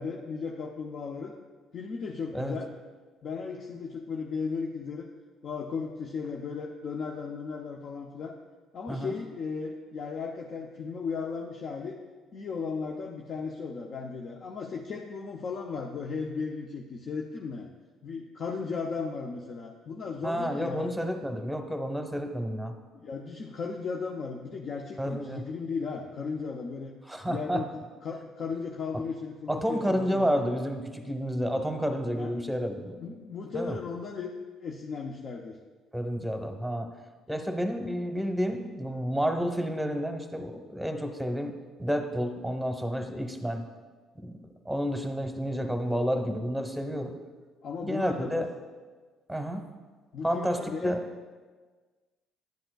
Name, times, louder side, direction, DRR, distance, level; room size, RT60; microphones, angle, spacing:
voice 1, 0.0-1.3 1.7-2.7 3.2-5.1 5.4-8.3 8.7-12.0 12.3-17.7 18.0-20.9 22.9-26.9 27.3-27.7 28.0-30.3 32.2-32.3 33.0-34.3 34.6-35.6 47.6-48.5 50.1-50.9, left 5 dB, 55° left, 2 dB, 0.6 m, -36 dB
voice 2, 20.2-22.8 25.0-25.5 27.1-27.6 29.5-32.9 33.5-33.8 35.9-36.9 37.3-41.5 41.8-43.6 44.2-47.1 47.8-48.5 49.3-49.7 50.2-51.0, equal, 5° right, 6 dB, 1.0 m, -30 dB
10.5 x 7.7 x 2.3 m, 1.4 s
supercardioid pair, 65°, 0 cm